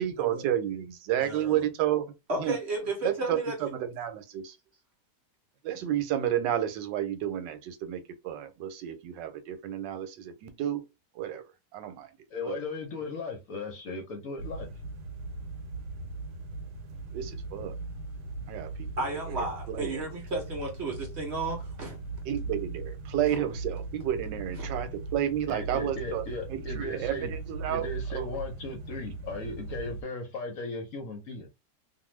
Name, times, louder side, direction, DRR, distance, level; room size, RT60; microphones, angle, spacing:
voice 1, 0.0-2.1 2.4-2.6 3.0-4.5 5.6-10.8 11.2-11.4 11.7-12.1 12.5-12.6 17.1-17.7 18.5-20.0 22.3-26.2 26.5-28.3, right 11 dB, 90° right, 1.3 m, -31 dB
voice 2, 1.2-1.7 2.3-3.6 19.0-22.0 23.3-23.4 24.6-24.7, right 2 dB, 55° right, 0.8 m, -33 dB
voice 3, 12.3-14.7 25.5-27.3 27.7-31.5, left 3 dB, 65° left, 0.9 m, -37 dB
sound 1, 14.4-30.0, right 3 dB, 70° right, 1.1 m, -39 dB
2.6 x 2.5 x 3.0 m
omnidirectional pair, 1.9 m